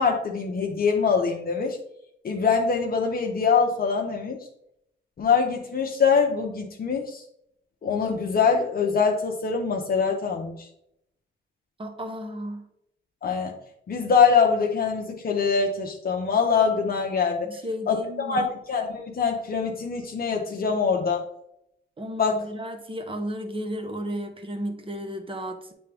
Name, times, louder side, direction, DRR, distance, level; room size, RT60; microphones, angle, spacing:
voice 1, 0.0-1.8 2.2-4.4 5.2-7.2 7.8-10.7 13.2-13.5 13.9-17.5 17.9-21.2 22.2-22.5, left 5 dB, 50° left, 1 dB, 0.9 m, -23 dB
voice 2, 11.8-12.6 17.4-18.5 22.0-25.7, equal, 25° right, 6 dB, 1.2 m, -33 dB
8.5 x 3.4 x 3.5 m, 0.76 s
cardioid pair, 85°, 20 cm